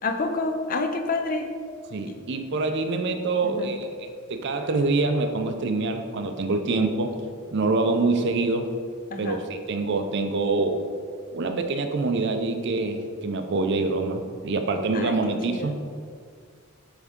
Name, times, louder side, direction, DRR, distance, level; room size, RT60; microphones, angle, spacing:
voice 1, 0.0-1.5 2.1-2.2 3.4-3.7 9.1-9.4 14.9-15.7, left 3 dB, 40° left, 5 dB, 0.5 m, -29 dB
voice 2, 1.9-7.1 7.5-8.7 9.2-10.8 11.3-15.8, right 3 dB, 55° right, 6 dB, 0.5 m, -25 dB
8.0 x 3.6 x 3.6 m, 2.1 s
head